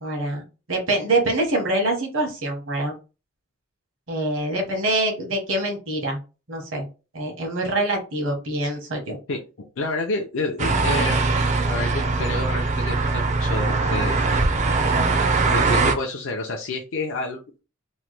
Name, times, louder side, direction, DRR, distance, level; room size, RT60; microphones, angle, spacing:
voice 1, 0.0-2.9 4.1-6.2 6.5-6.9 7.1-9.2, right 2 dB, 70° right, 2 dB, 1.1 m, -25 dB
voice 2, 9.8-11.3 11.7-14.2 15.4-17.6, left 3 dB, 70° left, 1 dB, 0.5 m, -29 dB
sound 1, 10.6-15.9, right 3 dB, 35° right, 0.5 m, -21 dB
3.1 x 2.1 x 3.1 m, 0.31 s
head